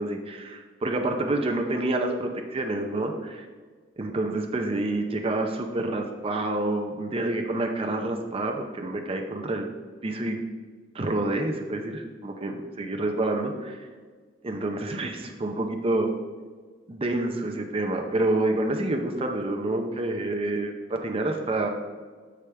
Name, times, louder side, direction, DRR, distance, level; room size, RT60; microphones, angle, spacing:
voice 1, 0.0-3.5 4.0-9.7 10.0-10.4 10.9-13.9 14.4-16.1 16.9-21.7, right 2 dB, 30° right, 3 dB, 0.6 m, -28 dB
8.3 x 4.9 x 3.3 m, 1.5 s
head